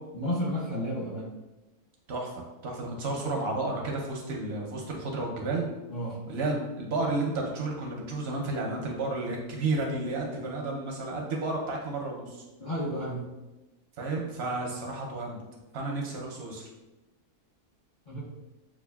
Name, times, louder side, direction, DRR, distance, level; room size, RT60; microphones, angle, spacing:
voice 1, 0.1-1.3 5.9-6.2 12.6-13.3 18.1-18.2, equal, 60° left, -7 dB, 0.4 m, -32 dB
voice 2, 2.6-5.7 6.3-12.4 14.0-15.4 15.7-16.7, right 2 dB, 60° right, 0 dB, 0.6 m, -32 dB
6.0 x 2.3 x 2.2 m, 1.1 s
omnidirectional pair, 1.7 m